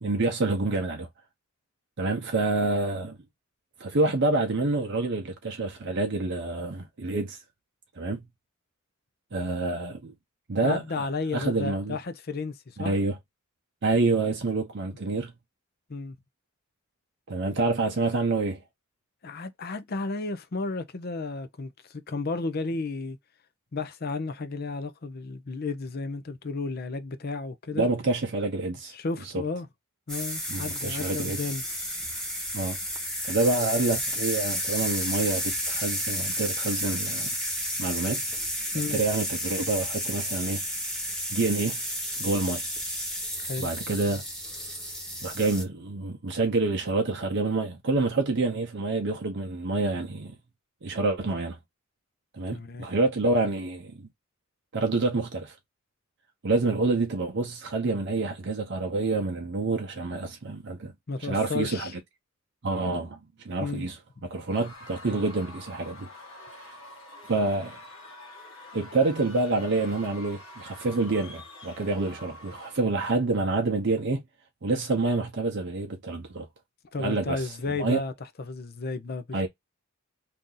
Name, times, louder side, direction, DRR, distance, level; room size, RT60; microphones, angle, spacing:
voice 1, 0.0-1.1 2.0-3.2 3.8-7.4 8.0-8.3 9.3-10.1 10.5-11.1 11.3-12.0 12.8-13.2 13.8-15.3 17.3-18.6 27.7-28.9 30.5-31.4 32.5-32.8 33.3-37.3 37.8-38.2 38.9-40.6 41.3-41.8 42.2-42.6 43.6-44.2 45.2-50.3 50.8-51.6 52.4-54.1 54.7-55.6 56.4-60.9 61.2-61.9 62.6-64.0 64.2-66.1 66.6-66.8 67.3-67.8 68.7-74.2 74.6-76.5 77.0-78.0 79.3-79.5, right 3 dB, 55° right, 0.7 m, -27 dB
voice 2, 10.6-12.9 15.9-16.2 19.2-23.2 23.7-27.9 28.9-29.7 30.1-31.6 38.7-39.0 43.4-43.7 52.5-52.9 61.1-61.9 63.6-63.9 76.9-78.1 78.4-79.5, left 3 dB, 45° left, 0.6 m, -33 dB
sound 1, 30.1-45.6, equal, 5° left, 1.1 m, -32 dB
Screaming / Cheering / Crowd, 64.5-73.1, left 2 dB, 75° left, 1.2 m, -46 dB
2.8 x 2.5 x 3.7 m
head